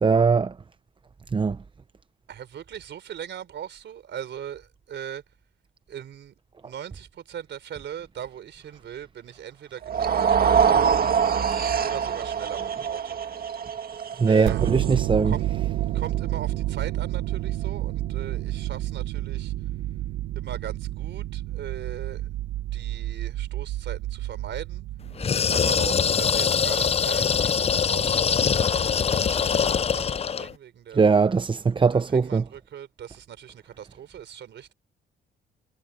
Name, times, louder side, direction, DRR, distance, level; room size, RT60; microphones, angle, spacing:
voice 1, 0.0-0.5 1.3-1.6 14.2-15.3 30.9-32.4, right 5 dB, 25° right, 0.7 m, -20 dB
voice 2, 2.3-5.2 5.9-6.3 6.6-11.2 11.8-13.2 14.2-14.6 14.9-15.5 15.9-19.5 20.4-22.3 22.7-24.9 25.5-31.1 31.9-34.7, right 9 dB, 65° right, 4.0 m, -39 dB
sound 1, 9.8-16.1, right 7 dB, 50° right, 1.9 m, -24 dB
sound 2, 14.5-25.4, right 14 dB, 85° right, 0.9 m, -29 dB
sound 3, 25.2-30.5, left 7 dB, 30° left, 0.5 m, -23 dB
cardioid pair, 90°, 20 cm